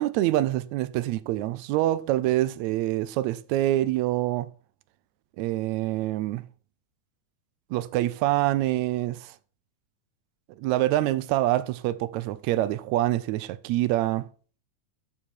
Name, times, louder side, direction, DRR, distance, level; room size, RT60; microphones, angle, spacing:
voice 1, 0.0-4.5 5.4-6.4 7.7-9.3 10.6-14.3, right 15 dB, 80° right, 1.7 m, -26 dB
14.0 x 4.7 x 4.5 m
omnidirectional pair, 3.6 m